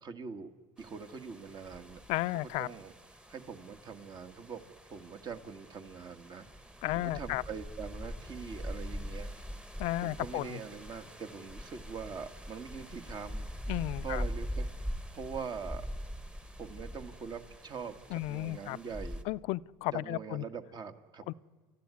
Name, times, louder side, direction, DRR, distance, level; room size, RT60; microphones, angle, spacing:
voice 1, 0.0-0.5 0.8-2.0 2.3-2.9 3.3-6.5 6.9-9.3 10.0-13.5 14.0-14.7 15.1-15.9 16.6-19.2 19.9-21.2, right 6 dB, 40° right, 1.8 m, -43 dB
sound 1, 0.8-19.2, equal, 10° right, 1.3 m, -43 dB
voice 2, 2.1-2.7 6.8-7.4 9.8-10.6 13.7-14.2 18.1-18.8 19.3-20.4 21.3-21.4, left 18 dB, 70° left, 0.6 m, -33 dB
29.5 x 13.5 x 9.8 m
supercardioid pair, 105°, 11 cm